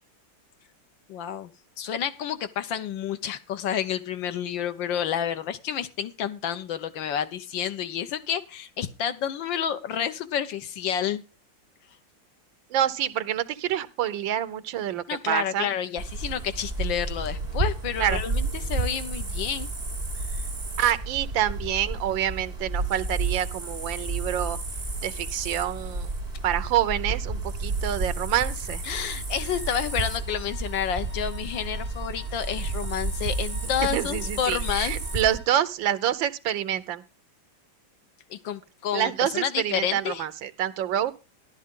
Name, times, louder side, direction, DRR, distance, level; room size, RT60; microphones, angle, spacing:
voice 1, 1.1-1.5 1.8-11.2 15.1-19.7 20.3-20.4 28.8-35.0 38.3-40.2, left 9 dB, 75° left, 11 dB, 1.7 m, -30 dB
voice 2, 12.7-15.7 18.0-18.2 20.8-24.6 25.0-26.1 26.4-28.8 33.8-37.0 38.9-41.1, right 11 dB, 80° right, 14 dB, 1.5 m, -27 dB
sound 1, 16.0-35.4, right 3 dB, 30° right, 3.1 m, -31 dB
Wind instrument woodwind instrument, 29.3-35.7, left 2 dB, 5° left, 2.0 m, -51 dB
13.5 x 11.5 x 3.7 m, 0.29 s
omnidirectional pair, 2.1 m